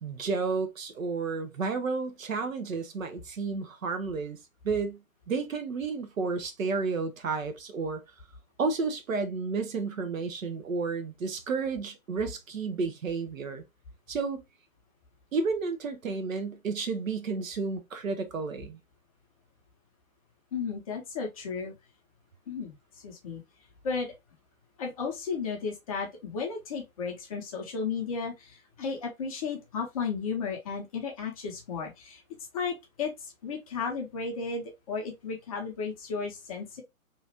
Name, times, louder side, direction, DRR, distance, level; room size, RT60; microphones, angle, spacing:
voice 1, 0.0-4.4 4.6-5.0 5.3-8.0 8.6-13.6 14.1-14.4 15.3-18.8, right 4 dB, 65° right, 0.9 m, -31 dB
voice 2, 20.5-21.7 22.5-22.7 23.0-23.4 23.8-24.1 24.8-32.2 32.5-33.1 33.4-36.8, left 5 dB, 25° left, 0.7 m, -34 dB
3.0 x 2.4 x 2.8 m
figure-of-eight pair, 130°, 44 cm